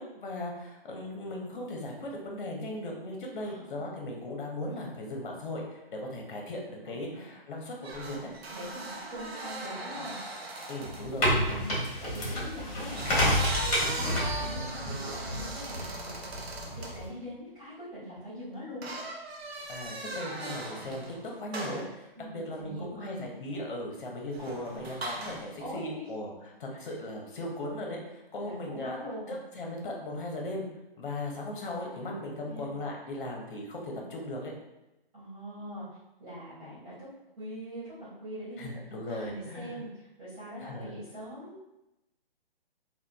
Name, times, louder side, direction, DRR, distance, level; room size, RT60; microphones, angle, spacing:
voice 1, 0.0-8.3 10.7-11.3 19.7-29.0 29.3-30.7 31.0-34.5 38.6-39.8 40.6-40.9, left 1 dB, 55° left, 0 dB, 0.9 m, -38 dB
voice 2, 3.4-3.9 6.8-7.3 8.5-8.8 9.1-10.2 11.3-13.3 13.9-18.9 22.1-23.2 25.6-26.1 28.4-29.4 32.0-32.1 32.4-32.7 35.1-35.8 36.2-37.1 37.4-38.7 39.1-41.7, equal, 35° right, -13 dB, 1.4 m, -43 dB
sound 1, 7.8-11.1 12.7-17.0 18.8-21.2 21.5-21.9 24.3-25.5, right 2 dB, 85° right, 0.7 m, -39 dB
sound 2, 10.8-17.1, equal, 40° left, 1.2 m, -30 dB
3.6 x 2.3 x 2.3 m, 0.95 s
hypercardioid pair, 145°, 30 cm